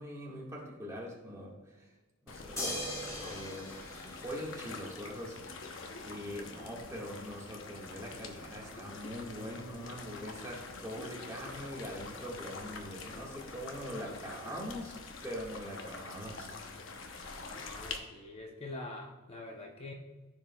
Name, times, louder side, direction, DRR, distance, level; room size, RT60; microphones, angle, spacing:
voice 1, 0.0-1.9 2.2-3.8 4.2-15.0 15.2-16.5, equal, 15° right, -3 dB, 1.7 m, -43 dB
sound 1, 2.3-18.0, left 3 dB, 75° left, 0.9 m, -46 dB
sound 2, 2.6-5.0 6.8-6.9, equal, 15° left, 1.5 m, -40 dB
voice 2, 17.5-19.9, left 2 dB, 30° left, 0 dB, 0.7 m, -45 dB
14.0 x 4.7 x 2.3 m, 1.3 s
head